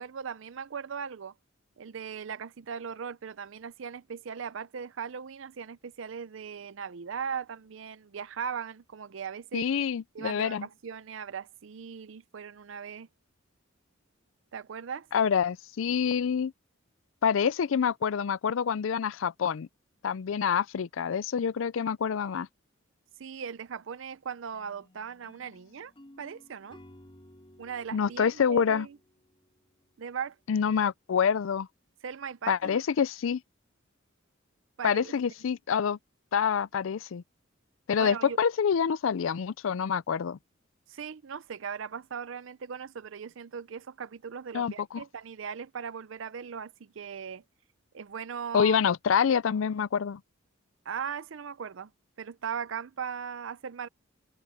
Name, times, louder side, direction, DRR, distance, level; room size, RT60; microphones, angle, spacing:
voice 1, 0.0-1.3 1.8-9.7 10.1-13.1 14.5-15.1 23.2-25.9 26.2-26.8 27.6-29.0 30.0-30.4 32.0-32.8 34.8-35.1 38.0-38.4 40.9-47.4 47.9-48.8 50.9-51.9 52.2-53.9, right 7 dB, 65° right, 0.5 m, -38 dB
voice 2, 9.5-10.7 15.1-16.5 17.2-19.7 20.0-22.5 27.9-28.9 30.5-31.7 32.5-33.4 34.8-36.0 36.3-37.2 37.9-40.4 44.5-45.0 48.5-50.2, left 7 dB, 75° left, 0.4 m, -27 dB
sound 1, 24.5-29.7, left 1 dB, 25° left, 4.2 m, -56 dB
head